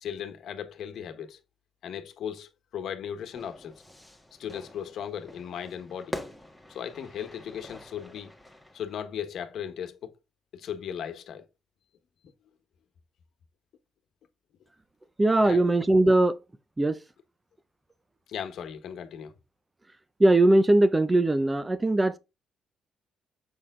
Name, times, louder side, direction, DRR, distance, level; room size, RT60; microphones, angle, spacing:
voice 1, 0.0-1.4 1.8-3.7 4.4-6.2 6.7-8.3 8.7-10.1 10.5-11.4 15.4-15.6 18.3-19.3, left 8 dB, 70° left, 1.2 m, -37 dB
Fire / Fireworks, 3.4-8.9, left 1 dB, ahead, 1.6 m, -44 dB
voice 2, 15.2-16.4 16.8-17.0 20.2-22.2, right 2 dB, 20° right, 0.8 m, -20 dB
7.1 x 4.4 x 3.7 m
cardioid pair, 90°, 0 cm